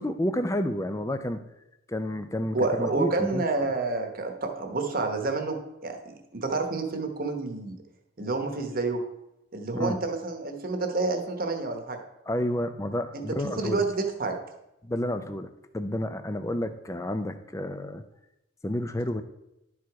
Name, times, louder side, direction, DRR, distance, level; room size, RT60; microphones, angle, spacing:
voice 1, 0.0-1.4 1.9-3.7 9.7-10.0 12.3-13.9 14.8-18.0 18.6-19.2, left 1 dB, 15° left, 9 dB, 0.4 m, -30 dB
voice 2, 2.5-5.6 5.8-7.8 8.2-9.0 9.5-12.0 13.1-13.2 13.6-14.3, right 3 dB, 45° right, 4 dB, 1.0 m, -29 dB
11.5 x 4.8 x 4.6 m, 0.88 s
head